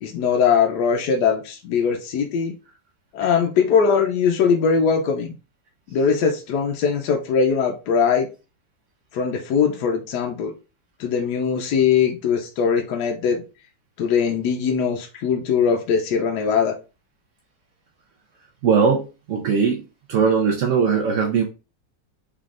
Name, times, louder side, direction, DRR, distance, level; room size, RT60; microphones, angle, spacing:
voice 1, 0.0-2.5 3.1-5.3 5.9-8.3 9.1-10.5 11.0-13.4 14.0-16.7, left 6 dB, 70° left, 2 dB, 1.1 m, -21 dB
voice 2, 18.6-19.8 20.1-21.4, right 6 dB, 80° right, 1 dB, 0.6 m, -20 dB
3.7 x 3.4 x 2.4 m, 0.31 s
omnidirectional pair, 2.0 m